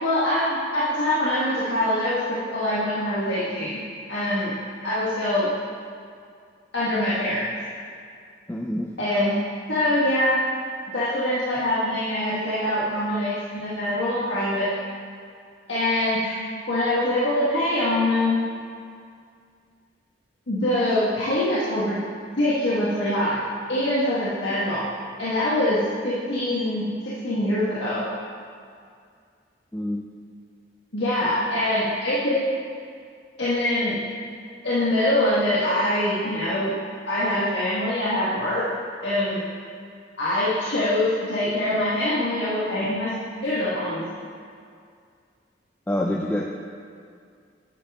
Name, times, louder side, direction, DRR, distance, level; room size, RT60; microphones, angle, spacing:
voice 1, 0.0-3.8 4.1-4.5 4.8-5.5 6.7-7.5 9.0-9.3 9.7-10.4 10.9-14.7 15.7-16.4 16.7-18.4 20.5-21.9 22.4-23.4 23.7-24.8 25.2-28.0 30.9-32.4 33.4-34.0 34.6-36.7 37.1-38.7 39.0-39.4 40.2-43.1 43.4-44.1, left 1 dB, 85° left, -9 dB, 1.6 m, -24 dB
voice 2, 8.5-8.9 29.7-30.0 45.9-46.5, left 1 dB, 10° left, 0 dB, 0.4 m, -26 dB
9.6 x 8.9 x 3.6 m, 2.2 s
head